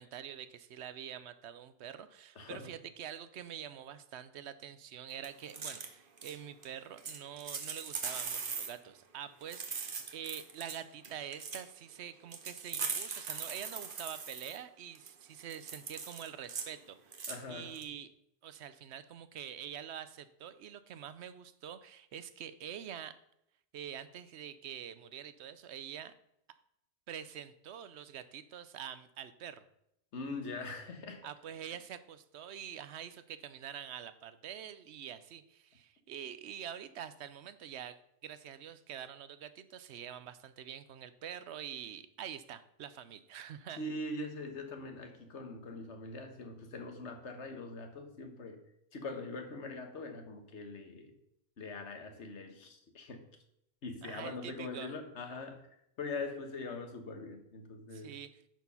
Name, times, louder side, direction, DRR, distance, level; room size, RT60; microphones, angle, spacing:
voice 1, 0.0-18.1 18.4-23.2 23.7-26.1 27.1-29.6 31.2-38.0 38.2-43.8 54.0-55.0 57.9-58.3, right 9 dB, 75° right, 13 dB, 0.9 m, -46 dB
voice 2, 2.3-2.7 17.3-17.8 30.1-31.3 43.8-48.6 48.9-51.1 51.6-53.3 53.8-55.7 56.0-58.1, left 3 dB, 85° left, 6 dB, 1.6 m, -42 dB
sound 1, 5.2-5.9 6.2-6.4 6.6-6.7 7.0-8.7 9.4-10.8 11.0-11.6 12.3-14.6 14.9-15.1 15.4-16.7 17.1-17.4 17.7-17.8, right 5 dB, 50° right, 1.1 m, -40 dB
10.0 x 4.6 x 5.4 m, 0.77 s
omnidirectional pair, 1.1 m